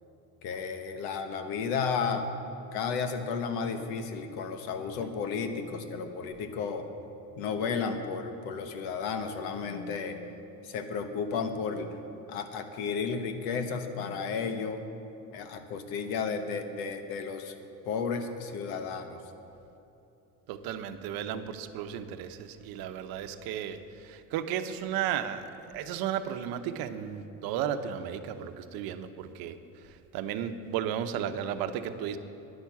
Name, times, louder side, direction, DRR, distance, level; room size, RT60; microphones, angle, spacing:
voice 1, 0.4-2.3 2.7-6.9 7.4-10.2 10.6-11.9 12.3-14.8 15.3-17.5 17.9-19.2, left 5 dB, 85° left, 7 dB, 1.2 m, -33 dB
voice 2, 20.5-25.5 25.7-29.5 30.1-32.2, right 9 dB, 75° right, 9 dB, 0.9 m, -34 dB
10.5 x 10.0 x 7.2 m, 2.9 s
cardioid pair, 110°, 36 cm